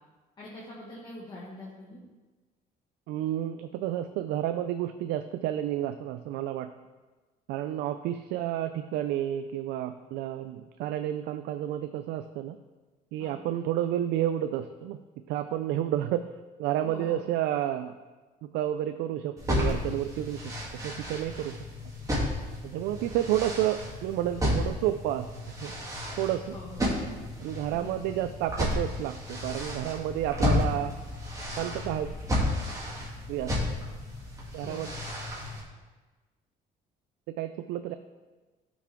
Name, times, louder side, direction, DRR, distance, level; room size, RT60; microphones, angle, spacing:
voice 1, 0.4-2.0 13.2-13.3 16.8-17.3 26.5-27.0 27.7-28.0 34.6-34.9, left 1 dB, 25° left, -6 dB, 1.8 m, -44 dB
voice 2, 3.1-6.7 7.5-12.6 13.1-15.0 15.3-16.3 16.6-17.9 18.5-20.5 20.8-21.6 22.6-25.3 25.6-25.7 26.2-26.6 27.4-30.9 31.6-32.1 33.3-33.5 34.5-34.9 37.3-37.9, right 12 dB, 90° right, 9 dB, 0.4 m, -30 dB
sound 1, 19.4-35.6, left 1 dB, 20° right, 2.6 m, -32 dB
13.0 x 6.0 x 3.6 m, 1.3 s
cardioid pair, 110°, 17 cm